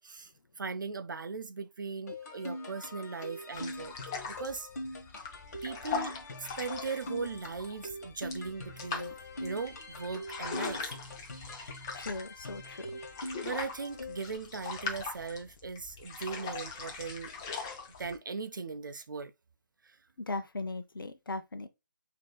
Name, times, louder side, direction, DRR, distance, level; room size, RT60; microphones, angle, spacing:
voice 1, 0.0-3.9 4.3-4.7 5.6-11.0 13.4-17.3 18.0-19.3 19.8-20.0, right 4 dB, 70° right, 0.4 m, -39 dB
sound 1, 2.1-14.4, left 1 dB, 45° left, 1.4 m, -43 dB
sound 2, 3.5-18.2, left 5 dB, 10° left, 0.3 m, -41 dB
voice 2, 11.9-13.0 20.3-21.7, left 3 dB, 80° left, 0.7 m, -38 dB
6.0 x 2.8 x 2.2 m
figure-of-eight pair, 160°, 11 cm